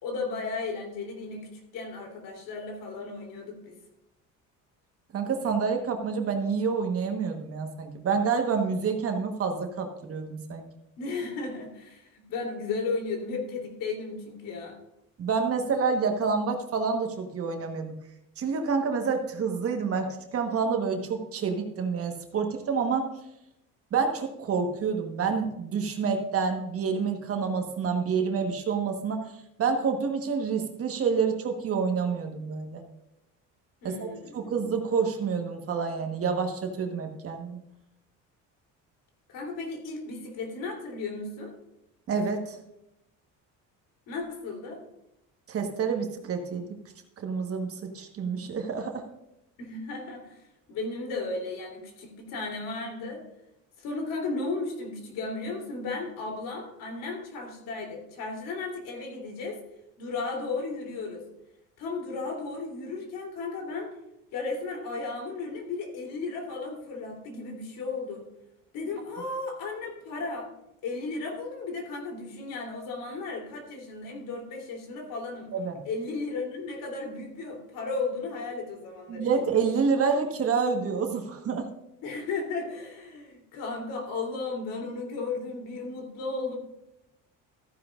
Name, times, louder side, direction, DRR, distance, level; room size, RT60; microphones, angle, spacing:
voice 1, 0.0-3.8 11.0-14.8 33.8-34.5 39.3-41.5 44.1-44.8 49.6-53.2 53.8-59.6 60.0-61.2 61.8-63.9 64.3-68.2 68.7-70.5 70.8-75.5 75.8-79.3 82.0-86.6, left 3 dB, 75° left, 1 dB, 3.3 m, -35 dB
voice 2, 5.1-10.7 15.2-17.9 18.4-23.1 23.9-32.8 33.8-37.6 42.1-42.6 45.5-46.7 47.2-49.0 75.5-75.8 79.1-81.7, right 5 dB, 45° right, 4 dB, 1.3 m, -28 dB
14.0 x 10.0 x 2.5 m, 0.85 s
cardioid pair, 135°, 33 cm